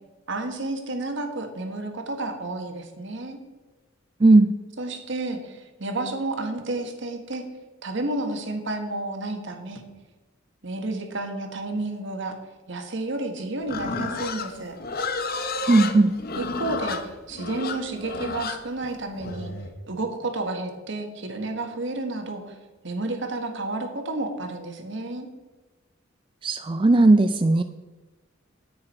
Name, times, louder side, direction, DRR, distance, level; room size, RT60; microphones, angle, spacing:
voice 1, 0.3-3.4 4.8-7.4 7.8-9.8 10.6-12.4 12.7-14.7 16.3-19.5 19.9-22.5 22.8-25.3, right 2 dB, 65° right, 5 dB, 1.5 m, -31 dB
voice 2, 4.2-4.5 15.7-16.1 26.4-27.6, right 2 dB, 25° right, 9 dB, 0.4 m, -17 dB
Livestock farm animals working animals, 13.7-19.7, left 4 dB, 50° left, 0.9 m, -31 dB
9.7 x 8.9 x 4.3 m, 1.2 s
head